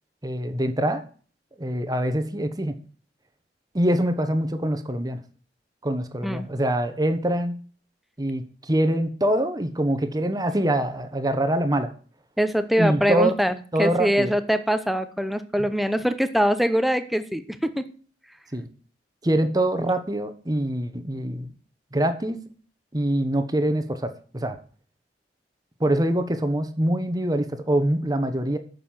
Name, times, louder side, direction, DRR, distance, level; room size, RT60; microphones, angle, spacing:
voice 1, 0.2-1.0 1.6-2.7 3.7-5.2 5.8-7.6 8.2-11.9 12.8-13.3 13.7-14.4 18.5-18.7 19.2-21.5 21.9-22.4 22.9-24.6 25.8-28.6, right 1 dB, 20° right, 9 dB, 1.2 m, -24 dB
voice 2, 12.4-17.8, equal, ahead, 10 dB, 0.8 m, -23 dB
10.0 x 6.8 x 7.5 m, 0.42 s
head